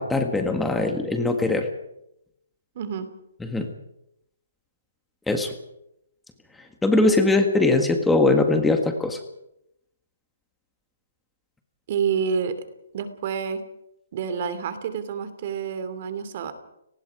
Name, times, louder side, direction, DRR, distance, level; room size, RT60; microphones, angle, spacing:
voice 1, 0.0-1.7 3.4-3.7 5.3-5.5 6.8-9.2, left 2 dB, 5° left, 5 dB, 1.8 m, -21 dB
voice 2, 2.7-3.1 11.9-12.6 12.9-13.6 14.1-16.5, right 6 dB, 45° right, 11 dB, 2.9 m, -28 dB
29.5 x 19.0 x 4.9 m, 0.82 s
hypercardioid pair, 155°, 0 cm